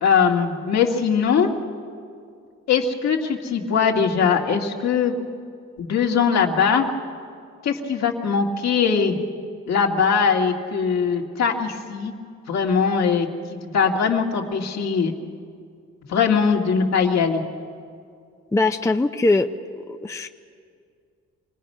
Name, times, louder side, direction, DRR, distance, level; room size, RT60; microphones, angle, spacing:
voice 1, 0.0-1.5 2.7-5.1 5.8-6.9 7.6-9.2 9.7-12.1 12.5-15.1 16.1-17.4, left 6 dB, 60° left, 1 dB, 2.0 m, -21 dB
voice 2, 18.5-19.5 19.7-20.3, left 2 dB, 10° left, 6 dB, 0.6 m, -21 dB
25.5 x 19.0 x 5.5 m, 2.2 s
cardioid pair, 90°, 30 cm